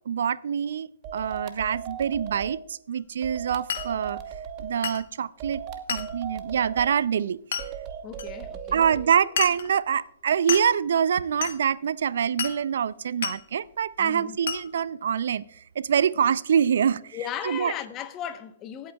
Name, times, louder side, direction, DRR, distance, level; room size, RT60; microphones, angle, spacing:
voice 1, 0.1-4.2 4.6-5.6 5.9-7.4 8.7-15.4 15.8-17.2 17.4-17.7, right 8 dB, 70° right, 0.4 m, -25 dB
sound 1, 1.0-2.6 3.2-4.7 5.4-6.9 7.6-9.1, right 8 dB, 35° right, 1.0 m, -37 dB
Glass, 3.7-3.9 4.8-5.1 5.9-6.1 7.5-7.7 8.2-8.3 9.4-9.7 10.5-10.7 11.4-11.6 12.4-12.6 13.2-13.4 14.5-14.7, left 8 dB, 70° left, 0.9 m, -30 dB
voice 2, 8.0-8.9 14.0-14.4 17.1-18.9, left 9 dB, 25° left, 0.9 m, -36 dB
24.0 x 8.5 x 2.3 m
hypercardioid pair, 130°, 0 cm